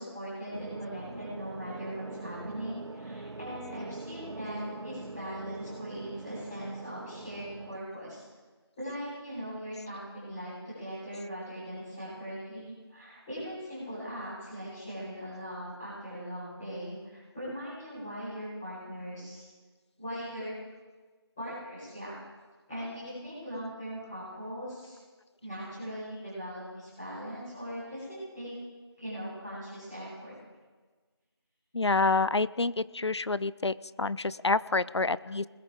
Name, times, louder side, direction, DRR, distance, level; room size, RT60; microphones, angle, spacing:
voice 1, 0.0-8.2 8.8-19.5 20.0-20.5 21.4-22.1 22.7-25.0 25.4-28.5 29.0-30.3, equal, 5° left, -19 dB, 5.2 m, -40 dB
sound 1, 0.5-7.8, right 3 dB, 85° right, 0.6 m, -43 dB
voice 2, 31.7-35.5, left 3 dB, 80° left, 18 dB, 0.5 m, -28 dB
21.0 x 10.0 x 3.8 m, 1.3 s
figure-of-eight pair, 175°, 14 cm